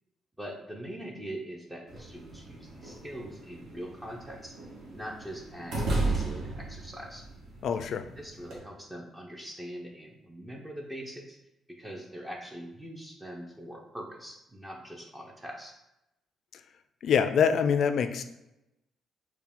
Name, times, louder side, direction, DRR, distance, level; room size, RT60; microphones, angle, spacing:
voice 1, 0.4-4.6 4.9-7.2 8.2-11.4 11.8-15.8, equal, 10° right, 0 dB, 0.6 m, -42 dB
sound 1, 1.9-8.6, right 2 dB, 75° right, 1.1 m, -35 dB
voice 2, 7.6-8.0 17.0-18.2, left 7 dB, 65° left, 9 dB, 0.3 m, -25 dB
4.5 x 2.2 x 3.5 m, 0.92 s
cardioid pair, 90°, 0 cm